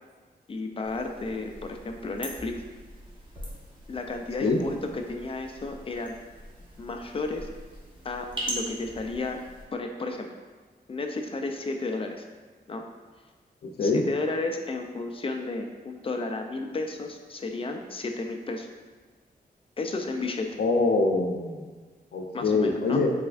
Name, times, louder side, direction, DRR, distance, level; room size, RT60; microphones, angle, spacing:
voice 1, 0.5-2.5 3.9-6.1 6.8-7.5 8.0-9.4 9.7-10.3 10.9-12.2 12.7-12.8 13.8-18.7 19.8-20.5 22.3-23.0, left 3 dB, 35° left, 4 dB, 0.4 m, -32 dB
sound 1, 0.8-9.6, right 1 dB, 30° right, 1.1 m, -41 dB
voice 2, 13.6-14.0 20.6-21.7 22.1-23.1, left 3 dB, 80° left, 2 dB, 0.6 m, -24 dB
4.6 x 4.2 x 2.5 m, 1.4 s
wide cardioid pair, 130°, 17 cm